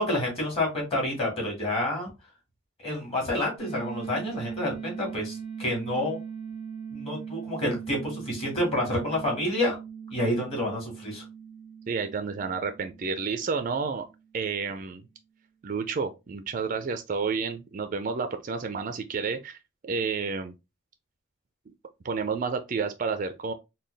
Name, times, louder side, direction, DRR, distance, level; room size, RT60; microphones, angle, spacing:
voice 1, 0.0-2.1 2.8-5.3 5.6-6.2 6.9-9.8 10.1-11.2, left 1 dB, 30° left, 1.9 m, -28 dB
sound 1, 3.6-14.3, right 7 dB, 65° left, 2.0 m, -40 dB
voice 2, 11.9-14.1 14.3-15.0 15.6-19.6 19.8-20.5 22.0-23.5, right 5 dB, 40° right, 0.3 m, -30 dB
3.9 x 2.2 x 3.2 m
head